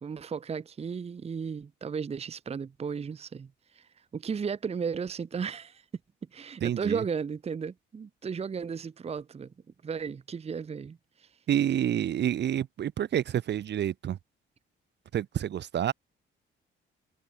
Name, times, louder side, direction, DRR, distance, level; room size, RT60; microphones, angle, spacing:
voice 1, 0.0-5.8 6.3-9.5 9.8-11.3, right 6 dB, 30° right, 0.8 m, -35 dB
voice 2, 6.6-7.0 11.5-14.2 15.1-15.9, right 10 dB, 60° right, 1.2 m, -28 dB
cardioid pair, 90°, 20 cm